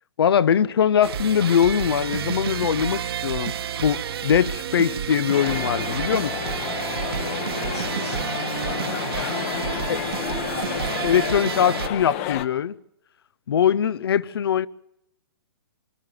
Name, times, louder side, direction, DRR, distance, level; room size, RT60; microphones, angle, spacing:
voice 1, 0.2-3.5 3.8-6.4 9.9-10.0 11.0-12.8 13.5-14.7, left 8 dB, 70° left, 0.8 m, -21 dB
sound 1, 1.0-11.9, right 8 dB, 70° right, 1.5 m, -30 dB
sound 2, 5.3-12.5, left 11 dB, 30° left, 1.1 m, -31 dB
voice 2, 7.6-9.9, left 4 dB, 85° left, 7.6 m, -38 dB
25.0 x 12.0 x 9.3 m
hypercardioid pair, 150°, 13 cm